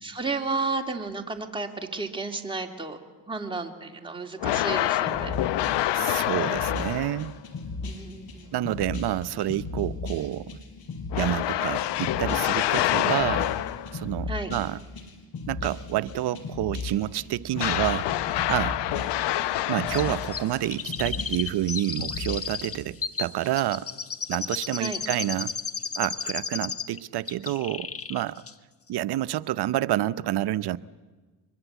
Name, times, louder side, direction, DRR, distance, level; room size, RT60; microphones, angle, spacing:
voice 1, 0.0-3.0 3.3-5.3 7.8-8.5 14.3-14.5 24.8-25.0, right 3 dB, 10° right, 3.0 m, -32 dB
sound 1, 4.4-7.4 11.1-14.0 17.6-20.7, left 14 dB, 75° left, 0.9 m, -27 dB
sound 2, 5.1-22.8, left 3 dB, 60° left, 4.8 m, -37 dB
voice 2, 5.9-7.3 8.5-10.6 11.2-13.5 13.9-14.8 15.5-18.1 18.5-18.8 19.7-23.9 24.3-25.5 26.0-28.4 28.9-30.8, right 14 dB, 65° right, 0.8 m, -28 dB
Chirp tweet, 19.9-27.0 27.3-28.2 28.5-28.6, left 6 dB, 35° left, 1.3 m, -34 dB
24.0 x 21.0 x 8.2 m
supercardioid pair, 70°, 42 cm